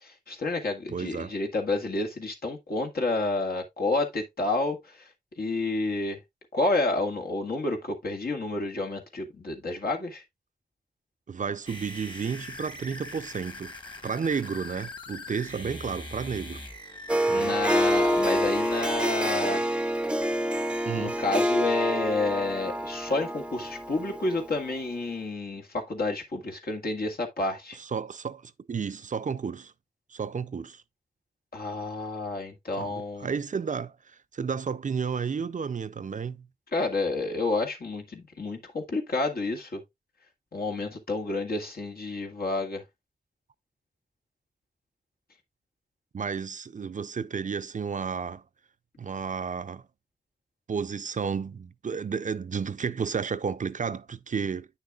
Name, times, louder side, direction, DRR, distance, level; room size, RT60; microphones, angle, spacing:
voice 1, 0.0-4.8 5.4-6.2 6.5-10.2 17.1-19.6 21.0-27.8 31.5-33.3 36.7-39.8 40.5-42.8, left 2 dB, 75° left, 1.8 m, -30 dB
voice 2, 0.9-1.4 11.3-13.7 14.0-16.6 17.3-17.6 20.9-21.2 27.7-29.7 30.1-30.8 32.8-36.5 46.1-48.4 49.0-49.8 50.7-54.7, right 6 dB, 55° right, 0.5 m, -32 dB
sound 1, 11.7-19.0, left 2 dB, 30° left, 1.4 m, -42 dB
Harp, 17.1-24.6, equal, 5° right, 0.5 m, -27 dB
9.3 x 6.5 x 2.4 m
wide cardioid pair, 70°, 16 cm